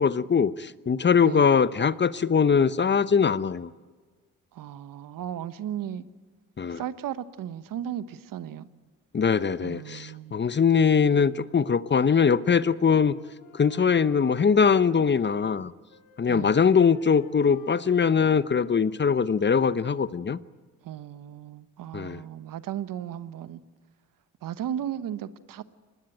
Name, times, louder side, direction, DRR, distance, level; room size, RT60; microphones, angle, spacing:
voice 1, 0.0-3.7 6.6-6.8 9.1-13.1 13.5-15.7 16.2-20.4 21.9-22.2, left 6 dB, 30° left, 16 dB, 0.9 m, -22 dB
voice 2, 4.5-6.0 6.7-8.7 9.6-10.4 16.3-16.6 20.8-23.6 24.4-25.6, right 10 dB, 65° right, 14 dB, 1.2 m, -35 dB
Wind instrument woodwind instrument, 12.4-15.6 15.9-19.9, left 5 dB, 75° left, 3.1 m, -51 dB
24.5 x 20.0 x 9.1 m, 1.4 s
supercardioid pair, 60°, 36 cm